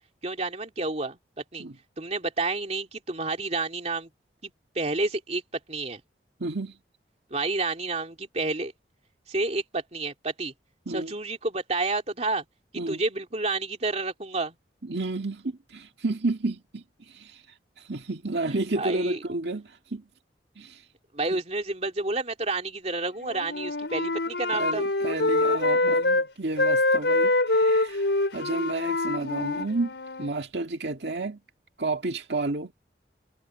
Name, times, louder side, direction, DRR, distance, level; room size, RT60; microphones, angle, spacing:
voice 1, 0.2-1.2 1.5-1.7 2.0-4.1 4.4-5.4 5.7-6.0 7.3-8.7 9.3-10.5 10.9-12.4 12.9-14.5 18.7-19.2 21.1-24.8, right 3 dB, 40° right, 3.0 m, -30 dB
voice 2, 6.4-6.8 10.9-11.1 12.8-13.0 14.8-20.0 20.6-20.8 21.3-21.4 24.5-31.4 31.8-32.7, right 2 dB, 75° right, 1.9 m, -31 dB
Wind instrument woodwind instrument, 23.2-26.3 26.6-30.3, left 2 dB, 85° left, 5.1 m, -25 dB
head